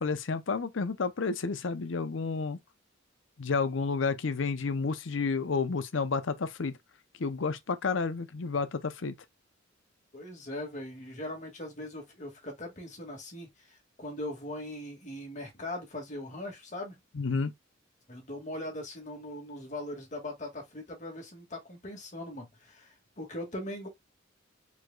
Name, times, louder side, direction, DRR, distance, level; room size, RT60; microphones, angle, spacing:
voice 1, 0.0-2.6 3.4-6.7 7.2-9.1 17.1-17.5, left 4 dB, 75° left, 0.7 m, -30 dB
voice 2, 10.1-17.0 18.1-23.9, left 1 dB, 40° left, 2.0 m, -40 dB
4.8 x 4.2 x 2.3 m
head